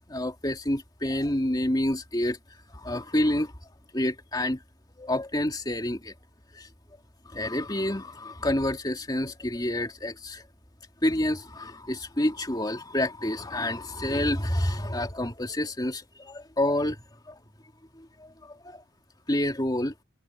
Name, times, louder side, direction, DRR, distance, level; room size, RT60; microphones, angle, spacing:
voice 1, 0.1-2.4 2.7-3.5 3.9-4.6 5.0-6.1 6.5-6.7 7.3-10.4 11.0-17.0 17.3-17.4 18.0-18.8 19.3-19.9, left 1 dB, 20° left, 3.1 m, -28 dB
head